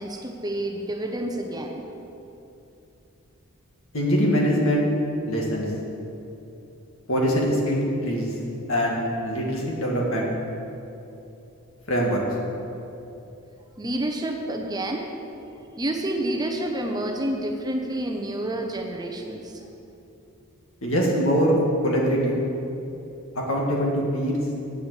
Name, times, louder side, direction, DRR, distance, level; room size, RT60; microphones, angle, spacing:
voice 1, 0.0-1.9 13.8-15.1 15.8-19.7, right 1 dB, 15° right, 2 dB, 0.7 m, -29 dB
voice 2, 3.9-4.9 5.3-5.7 7.1-8.3 8.7-10.3 11.9-12.2 20.8-22.4 23.3-24.4, equal, 65° left, -2 dB, 2.2 m, -23 dB
9.4 x 7.6 x 8.3 m, 2.9 s
head